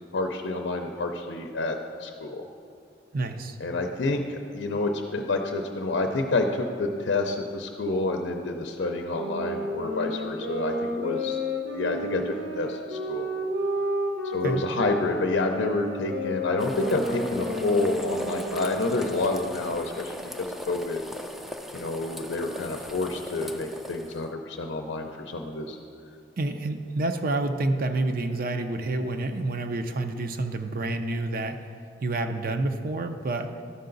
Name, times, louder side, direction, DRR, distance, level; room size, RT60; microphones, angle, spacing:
voice 1, 0.1-1.7 2.0-2.5 3.6-11.4 11.7-13.3 14.2-21.0 21.7-25.8, left 2 dB, 85° left, 4 dB, 0.6 m, -28 dB
voice 2, 3.1-3.6 14.3-14.7 26.4-31.7 32.0-33.5, right 2 dB, 55° right, 7 dB, 0.5 m, -28 dB
sound 1, 9.1-19.1, equal, 75° right, 1.4 m, -32 dB
sound 2, 16.6-24.2, equal, ahead, 0.4 m, -39 dB
12.5 x 5.6 x 3.9 m, 2.4 s
head